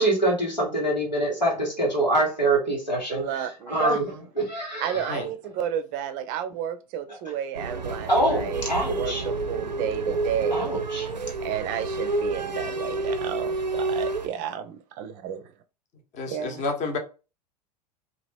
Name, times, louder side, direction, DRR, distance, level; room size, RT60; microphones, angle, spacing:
voice 1, 0.0-5.2 7.1-7.2 8.1-9.3 10.5-11.1, right 1 dB, 90° left, 1.3 m, -25 dB
voice 2, 3.1-4.0 4.8-10.8 11.4-15.4 16.3-16.6, right 9 dB, 40° right, 0.5 m, -31 dB
voice 3, 4.9-5.3 16.1-17.0, left 3 dB, 35° left, 0.9 m, -30 dB
sound 1, 7.6-14.3, right 3 dB, 90° right, 0.5 m, -29 dB
2.9 x 2.4 x 3.2 m
figure-of-eight pair, 85°, 21 cm